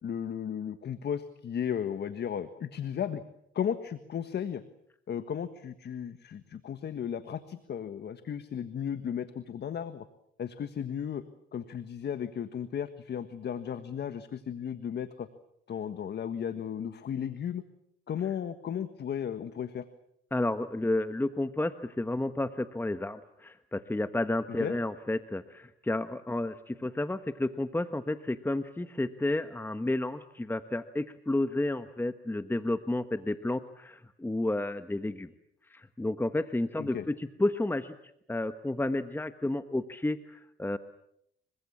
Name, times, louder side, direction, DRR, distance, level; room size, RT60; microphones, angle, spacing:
voice 1, 0.0-3.2 3.5-4.6 5.1-10.1 10.4-11.2 11.5-15.3 15.7-17.6 18.1-19.8 24.5-24.7 36.8-37.0, left 8 dB, 55° left, 11 dB, 1.6 m, -35 dB
voice 2, 20.3-35.3 35.7-38.0 38.3-40.8, left 2 dB, 10° left, 10 dB, 1.2 m, -31 dB
28.0 x 24.0 x 7.3 m, 0.74 s
cardioid pair, 90°, 20 cm